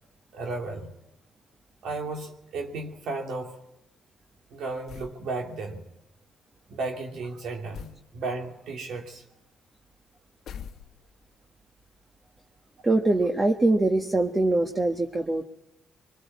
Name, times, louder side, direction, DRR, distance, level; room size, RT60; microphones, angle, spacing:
voice 1, 0.3-0.9 1.8-3.6 4.5-5.8 6.7-9.2, right 3 dB, 75° right, 2 dB, 2.8 m, -34 dB
sound 1, 4.9-5.2 7.7-8.1 10.5-11.2, left 7 dB, 75° left, 1.2 m, -42 dB
voice 2, 12.8-15.4, right 2 dB, 25° right, 3 dB, 1.5 m, -23 dB
23.5 x 22.0 x 8.4 m, 0.90 s
cardioid pair, 90°, 0 cm